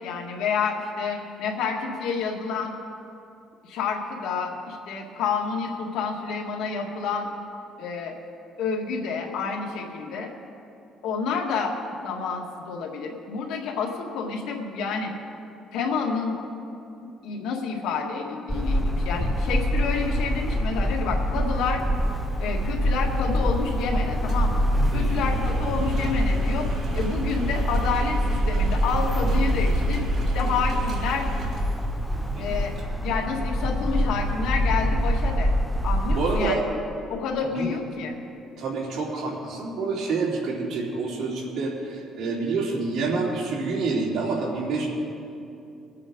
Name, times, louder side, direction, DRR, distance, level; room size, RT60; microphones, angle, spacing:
voice 1, 0.0-2.7 3.6-7.3 7.8-8.1 8.6-10.3 11.0-11.8 12.0-15.1 15.7-16.4 17.2-21.8 22.4-24.7 24.9-26.7 26.9-30.1 30.3-31.3 32.4-32.7 33.0-35.6 35.8-36.6 37.1-38.1, left 5 dB, 85° left, 1 dB, 1.8 m, -29 dB
sound 1, 18.5-36.5, equal, ahead, 0.5 m, -25 dB
Engine, 21.9-32.8, right 1 dB, 50° right, 2.1 m, -33 dB
voice 2, 24.9-25.3 32.1-32.5 36.2-36.6 37.5-37.7 38.6-44.9, right 3 dB, 65° right, -5 dB, 3.3 m, -28 dB
22.5 x 8.8 x 3.8 m, 2.6 s
cardioid pair, 135°, 0 cm